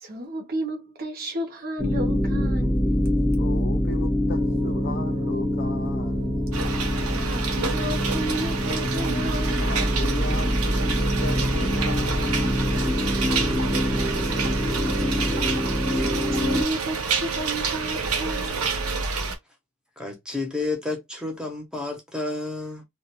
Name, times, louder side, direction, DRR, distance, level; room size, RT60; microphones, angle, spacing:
voice 1, 0.0-2.9 7.1-9.7 14.3-14.9 16.0-18.6, right 1 dB, 45° right, 0.8 m, -33 dB
sound 1, 1.8-16.6, left 1 dB, 25° left, 0.8 m, -25 dB
voice 2, 3.4-6.4 9.6-12.9, left 2 dB, 45° left, 0.4 m, -36 dB
sound 2, 4.4-19.0, right 6 dB, 70° right, 0.3 m, -37 dB
sound 3, 6.5-19.3, right 4 dB, 90° right, 0.7 m, -29 dB
voice 3, 20.0-22.8, left 3 dB, 5° right, 0.7 m, -31 dB
2.4 x 2.2 x 2.9 m
head